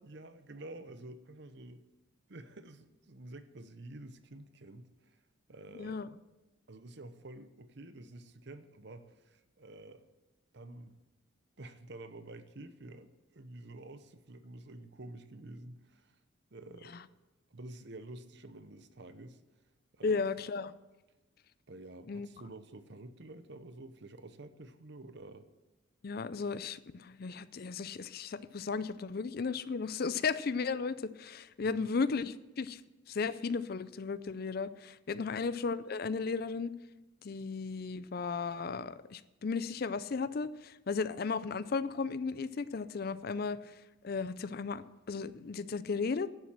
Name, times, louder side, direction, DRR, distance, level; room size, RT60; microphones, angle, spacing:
voice 1, 0.0-1.8 2.3-5.2 5.5-6.0 6.7-10.1 10.5-11.0 11.6-16.2 16.5-17.0 17.5-19.4 19.9-20.2 21.7-25.5 31.6-31.9 35.1-35.4, right 2 dB, 55° right, 11 dB, 0.8 m, -49 dB
voice 2, 5.7-6.1 20.0-20.7 22.1-22.3 26.0-32.8 33.1-36.7 37.2-43.6 44.0-46.3, left 4 dB, 50° left, 16 dB, 0.4 m, -35 dB
11.5 x 7.3 x 7.5 m, 1.1 s
head